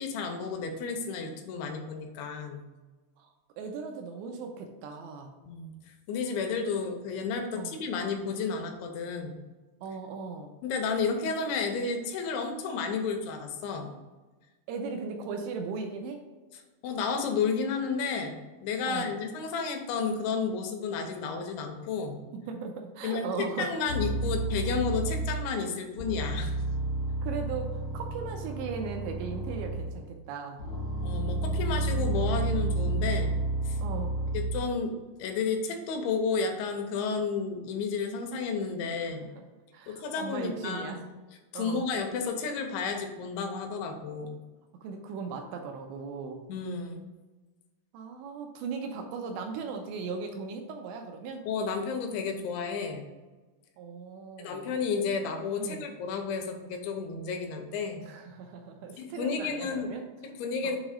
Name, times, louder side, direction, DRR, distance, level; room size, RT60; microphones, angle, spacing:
voice 1, 0.0-2.7 5.5-5.7 6.1-9.4 10.6-13.9 16.8-22.2 23.0-23.3 23.6-26.6 31.0-33.4 33.7-33.8 34.3-34.9 35.2-39.3 39.9-41.0 41.5-44.4 46.5-47.0 51.5-53.1 54.4-58.0 59.0-59.9 60.2-60.8, left 5 dB, 80° left, 4 dB, 2.9 m, -32 dB
voice 2, 3.2-5.3 7.5-7.8 9.8-10.5 14.7-16.2 18.8-19.2 22.5-23.7 27.2-30.6 33.8-34.2 39.1-41.0 41.5-41.9 44.8-46.4 47.9-51.4 53.8-54.8 55.6-55.9 58.0-60.0 60.6-60.8, right 5 dB, 85° right, 3 dB, 2.6 m, -38 dB
sound 1, 23.9-25.6 26.0-30.1 30.6-34.7, right 2 dB, 55° left, 1.0 m, -31 dB
7.3 x 3.0 x 4.9 m, 1.2 s
omnidirectional pair, 5.5 m